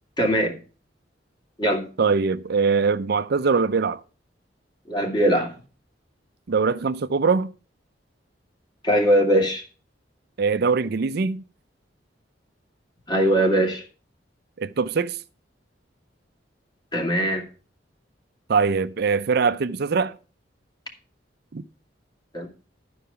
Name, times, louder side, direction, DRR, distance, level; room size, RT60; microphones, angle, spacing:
voice 1, 0.2-0.5 1.6-1.9 4.9-5.5 8.8-9.6 13.1-13.8 16.9-17.5 22.3-22.5, right 1 dB, 25° left, 2.2 m, -21 dB
voice 2, 2.0-4.0 6.5-7.5 10.4-11.4 14.6-15.2 18.5-20.1 21.5-21.6, right 5 dB, 60° right, 0.5 m, -22 dB
12.0 x 4.7 x 6.8 m
head